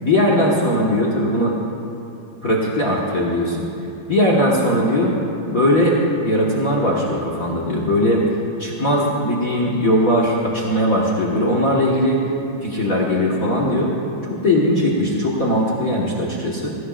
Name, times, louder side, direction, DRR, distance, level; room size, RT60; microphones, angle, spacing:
voice 1, 0.0-1.5 2.4-3.7 4.1-5.2 5.5-8.2 8.6-12.2 12.6-13.9 14.3-16.7, left 1 dB, 60° left, -3 dB, 0.9 m, -19 dB
21.5 x 17.0 x 2.5 m, 2.9 s
omnidirectional pair, 4.0 m